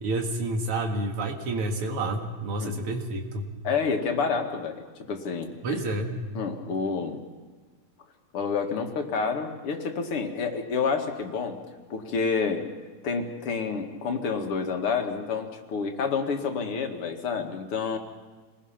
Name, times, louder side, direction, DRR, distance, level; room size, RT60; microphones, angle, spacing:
voice 1, 0.0-3.5 5.6-6.2, right 2 dB, 85° right, 3 dB, 2.9 m, -29 dB
voice 2, 3.6-5.5 6.3-7.2 8.3-11.6 11.9-12.7 13.0-18.0, left 5 dB, 80° left, 4 dB, 2.7 m, -29 dB
26.5 x 20.0 x 5.8 m, 1.4 s
omnidirectional pair, 2.4 m